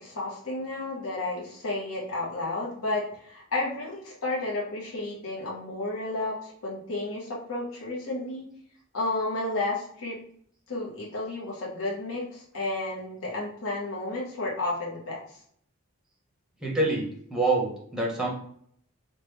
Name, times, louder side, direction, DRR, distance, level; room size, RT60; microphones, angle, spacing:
voice 1, 0.0-8.5 8.9-10.2 10.7-15.4, left 2 dB, 75° left, -4 dB, 0.8 m, -32 dB
voice 2, 16.6-18.3, right 2 dB, 5° right, -3 dB, 0.7 m, -26 dB
3.0 x 2.1 x 3.3 m, 0.64 s
head